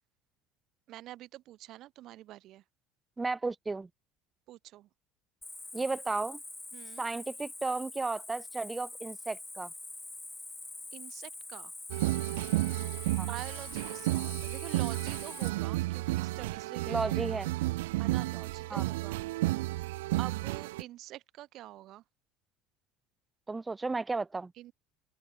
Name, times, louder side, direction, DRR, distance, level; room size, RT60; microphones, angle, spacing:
voice 1, 0.9-2.6 4.5-4.9 6.7-7.0 10.9-11.7 13.1-17.3 18.0-19.2 20.2-22.0 24.6-24.7, right 15 dB, 60° right, 2.6 m, -46 dB
voice 2, 3.2-3.9 5.7-6.4 7.0-9.7 13.2-13.3 16.9-17.5 18.7-18.8 23.5-24.5, right 3 dB, 20° right, 0.5 m, -34 dB
Cricket, 5.4-15.5, left 2 dB, 15° left, 2.4 m, -45 dB
sound 1, 11.9-20.8, right 19 dB, 85° right, 0.5 m, -32 dB
open air
supercardioid pair, 85°, 0 cm